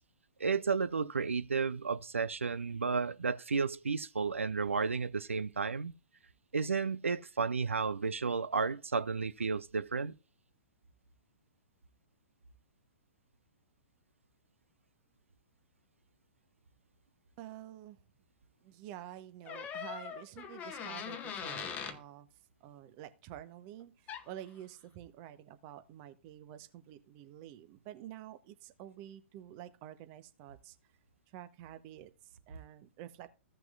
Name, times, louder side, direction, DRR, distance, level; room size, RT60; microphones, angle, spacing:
voice 1, 0.4-5.9 6.5-10.1, right 5 dB, 75° right, 0.6 m, -32 dB
voice 2, 17.4-18.0 18.6-22.3 22.6-30.8 31.3-33.3, right 12 dB, 35° right, 1.0 m, -49 dB
sound 1, 19.5-22.0 24.1-24.3, left 7 dB, 20° left, 0.9 m, -41 dB
16.0 x 6.0 x 2.5 m
figure-of-eight pair, 115°, 7 cm